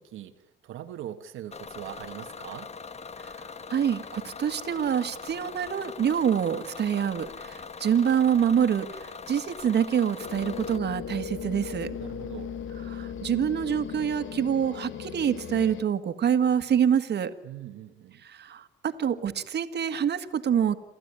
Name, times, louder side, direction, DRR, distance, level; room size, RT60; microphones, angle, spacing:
voice 1, 0.0-2.7 12.0-12.5 17.4-18.2, right 11 dB, 85° right, 6 dB, 1.3 m, -41 dB
Bus / Engine, 1.5-10.8, left 5 dB, 35° left, 1.2 m, -42 dB
voice 2, 3.7-11.9 12.9-17.3 18.2-20.8, right 8 dB, 60° right, 10 dB, 1.8 m, -26 dB
sound 1, 10.2-15.8, left 8 dB, 80° left, 1.3 m, -37 dB
28.0 x 14.5 x 9.8 m, 0.96 s
cardioid pair, 90°, 20 cm